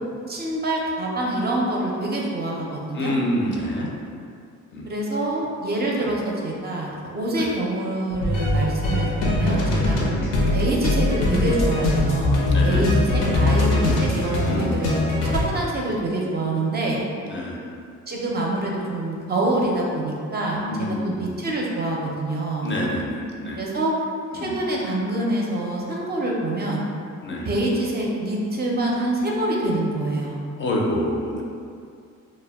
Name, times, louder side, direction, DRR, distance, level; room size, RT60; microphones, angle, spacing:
voice 1, 0.3-3.1 4.9-10.0 10.5-17.0 18.1-22.7 23.6-23.9 24.3-26.9 27.4-30.4, right 1 dB, 35° right, -3 dB, 0.4 m, -26 dB
voice 2, 2.9-3.9 4.7-4.9 6.0-6.1 7.4-7.5 9.9-10.6 12.5-12.8 13.7-14.0 14.5-14.8 17.2-17.6 20.6-21.3 22.6-23.6 24.3-24.6 27.2-27.5 30.6-31.4, left 1 dB, 40° left, -2 dB, 0.4 m, -28 dB
sound 1, 8.1-15.4, left 2 dB, 85° left, 0.6 m, -21 dB
2.1 x 2.1 x 3.4 m, 2.4 s
cardioid pair, 90°, 30 cm